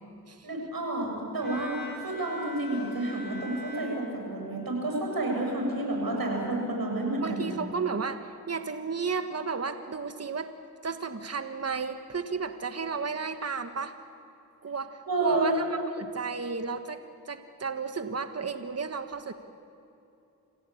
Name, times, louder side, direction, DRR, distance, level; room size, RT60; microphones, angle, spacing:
voice 1, 0.4-7.5 15.1-15.5, right 2 dB, 70° right, 0 dB, 7.4 m, -30 dB
Bowed string instrument, 1.4-4.8, left 2 dB, 30° left, 6.5 m, -43 dB
voice 2, 7.2-10.5 10.8-13.9 14.6-17.0 17.3-19.3, right 5 dB, 40° right, 8 dB, 1.5 m, -33 dB
27.0 x 16.5 x 8.6 m, 2.8 s
cardioid pair, 50°, 37 cm